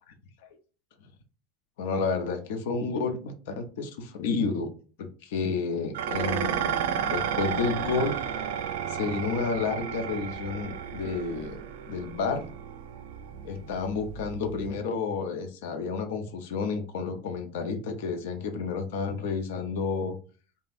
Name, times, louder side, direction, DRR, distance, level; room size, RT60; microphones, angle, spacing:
voice 1, 1.8-4.7 5.0-6.8 7.1-8.2 8.9-11.6 11.9-12.5 13.4-20.2, left 4 dB, 90° left, 6 dB, 0.8 m, -30 dB
Dishes pots and pans, 5.9-14.8, right 8 dB, 90° right, 0.5 m, -33 dB
5.4 x 2.3 x 2.6 m, 0.37 s
supercardioid pair, 175°, 0 cm